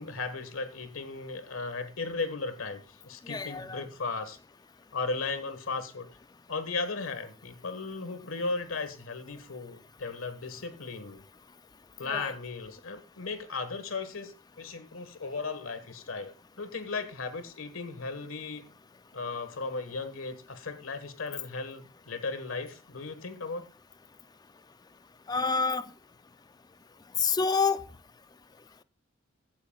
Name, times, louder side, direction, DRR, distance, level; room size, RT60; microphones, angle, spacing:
voice 1, 0.0-4.4 4.9-6.1 6.5-11.2 12.0-18.6 19.1-23.7, left 4 dB, 85° left, 1.5 m, -36 dB
voice 2, 3.3-3.8 12.1-12.3 25.3-25.9 27.2-27.8, left 5 dB, 20° left, 0.4 m, -27 dB
14.5 x 9.7 x 2.3 m
head